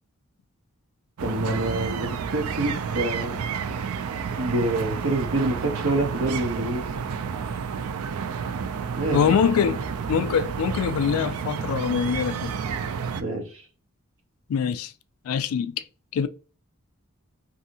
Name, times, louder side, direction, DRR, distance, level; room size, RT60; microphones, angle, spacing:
voice 1, 1.2-3.4 4.4-6.8 8.9-9.4 13.2-13.6, right 2 dB, 65° right, 0.8 m, -27 dB
sound 1, 1.2-13.2, right 6 dB, 85° right, 0.3 m, -30 dB
voice 2, 9.1-12.6 14.5-14.9 15.2-15.8 16.1-16.3, left 7 dB, 80° left, 0.3 m, -24 dB
2.7 x 2.7 x 2.6 m
head